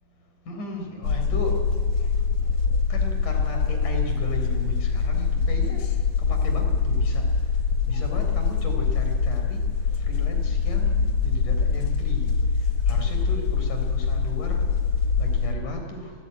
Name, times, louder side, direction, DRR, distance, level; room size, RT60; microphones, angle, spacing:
voice 1, 0.5-1.6 2.9-5.8 6.3-7.2 7.9-9.6 10.0-11.0 11.2-12.4 12.9-14.7 15.2-16.1, left 2 dB, 75° left, 3 dB, 5.6 m, -35 dB
sound 1, 1.0-15.6, left 5 dB, 55° left, 2.5 m, -24 dB
28.5 x 17.5 x 9.1 m, 2.1 s
omnidirectional pair, 3.6 m